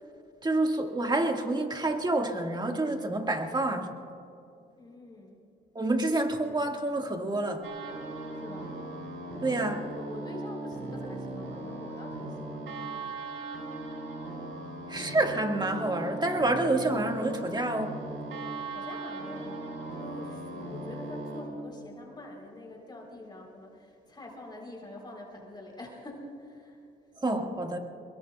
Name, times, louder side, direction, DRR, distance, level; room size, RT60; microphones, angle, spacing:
voice 1, 0.4-4.0 5.8-7.7 9.4-9.8 14.9-18.0 27.2-27.8, right 2 dB, 20° right, 3 dB, 1.7 m, -28 dB
voice 2, 4.8-5.4 8.3-8.7 9.9-13.0 18.7-26.8, left 1 dB, 20° left, 0 dB, 3.7 m, -45 dB
sound 1, 7.6-21.4, right 2 dB, 75° right, 4.8 m, -38 dB
24.0 x 22.0 x 2.3 m, 2.7 s
cardioid pair, 90°, 20 cm